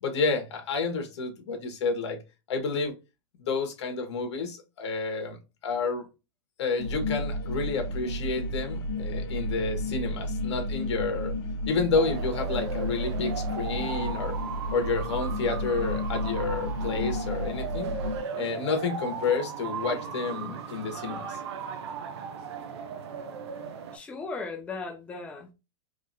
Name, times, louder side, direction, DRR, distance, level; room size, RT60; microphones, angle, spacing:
voice 1, 0.0-2.2 2.5-2.9 3.4-5.4 5.6-6.0 6.6-11.3 11.7-14.4 14.7-17.9 18.3-21.4, left 4 dB, 70° left, 1.3 m, -30 dB
sound 1, 6.8-18.2, left 1 dB, 50° left, 0.9 m, -32 dB
sound 2, 11.9-24.0, right 6 dB, 65° right, 0.7 m, -37 dB
voice 2, 23.9-25.5, left 4 dB, 10° left, 0.5 m, -37 dB
3.8 x 3.1 x 2.7 m
supercardioid pair, 145°, 15 cm